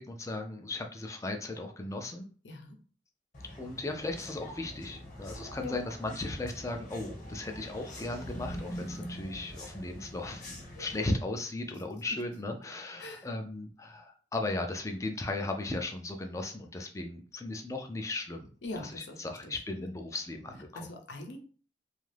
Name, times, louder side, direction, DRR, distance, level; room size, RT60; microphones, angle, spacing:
voice 1, 0.1-2.3 3.6-20.9, left 2 dB, 20° left, 4 dB, 0.4 m, -36 dB
voice 2, 2.4-2.8 5.6-5.8 13.0-13.3 18.6-19.2 19.4-19.5 20.7-21.4, left 2 dB, 85° left, 3 dB, 0.6 m, -41 dB
sound 1, 3.3-11.1, equal, 45° left, 1.0 m, -44 dB
2.6 x 2.4 x 3.2 m, 0.41 s
head